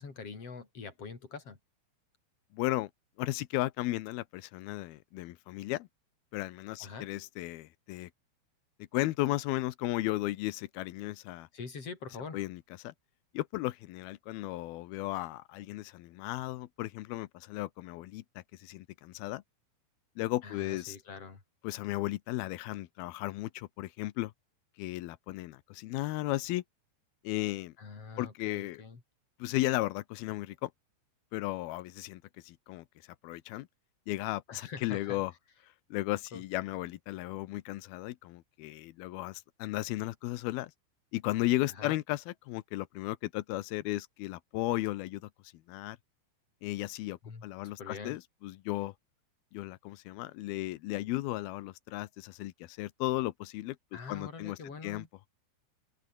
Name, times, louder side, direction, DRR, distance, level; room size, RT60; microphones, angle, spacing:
voice 1, 0.0-1.6 6.8-7.1 11.5-12.4 20.4-21.4 27.8-29.0 34.5-35.2 36.3-36.4 41.7-42.0 47.2-47.5 47.8-48.2 53.9-55.1, left 5 dB, 30° left, 5.0 m, -44 dB
voice 2, 2.5-2.9 3.2-5.9 6.3-8.1 8.9-11.5 12.3-12.9 13.3-19.4 20.2-21.0 21.6-24.3 24.8-26.6 27.2-27.7 28.2-28.8 29.4-30.7 31.3-32.8 33.2-33.7 34.1-35.3 35.9-40.7 41.1-46.0 46.6-48.9 49.5-55.1, left 17 dB, 85° left, 2.2 m, -35 dB
open air
omnidirectional pair, 5.5 m